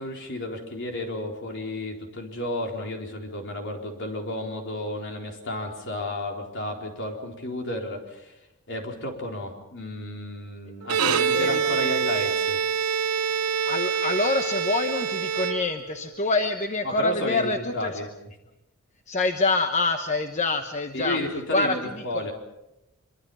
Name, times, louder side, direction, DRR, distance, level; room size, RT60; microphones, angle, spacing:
voice 1, 0.0-8.3 8.7-12.6 16.8-18.1 20.9-22.3, left 1 dB, 55° left, 2 dB, 4.1 m, -32 dB
Bowed string instrument, 10.8-16.1, right 7 dB, 90° right, 1.1 m, -26 dB
voice 2, 11.0-11.8 13.4-18.0 19.1-21.2 21.5-22.3, left 3 dB, 30° left, 6 dB, 1.1 m, -26 dB
25.0 x 24.0 x 5.6 m, 0.90 s
head